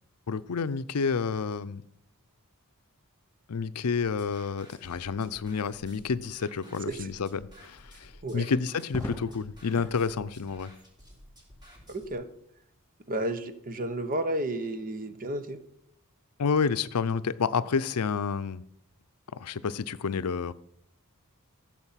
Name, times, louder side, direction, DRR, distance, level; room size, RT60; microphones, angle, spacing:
voice 1, 0.3-1.8 3.5-10.7 16.4-18.6 19.3-20.5, left 5 dB, 85° left, 0.6 m, -29 dB
sound 1, 3.9-12.1, equal, 20° right, 3.6 m, -53 dB
Crackle, 8.8-10.0 11.6-12.1, left 1 dB, 10° left, 3.3 m, -40 dB
voice 2, 11.9-12.3 13.1-15.6, right 1 dB, 40° right, 1.0 m, -32 dB
14.5 x 7.4 x 5.7 m
head